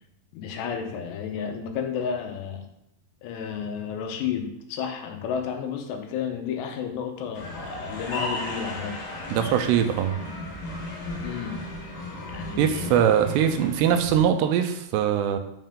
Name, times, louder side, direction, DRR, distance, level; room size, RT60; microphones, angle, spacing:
voice 1, 0.3-2.7 3.2-9.0 11.2-11.6 12.3-13.1, left 7 dB, 90° left, 4 dB, 3.1 m, -32 dB
sound 1, 7.3-14.2, left 2 dB, 55° left, 2.8 m, -35 dB
voice 2, 9.3-10.2 12.6-15.4, right 9 dB, 85° right, 8 dB, 2.7 m, -22 dB
7.8 x 5.6 x 3.7 m, 0.83 s
omnidirectional pair, 4.8 m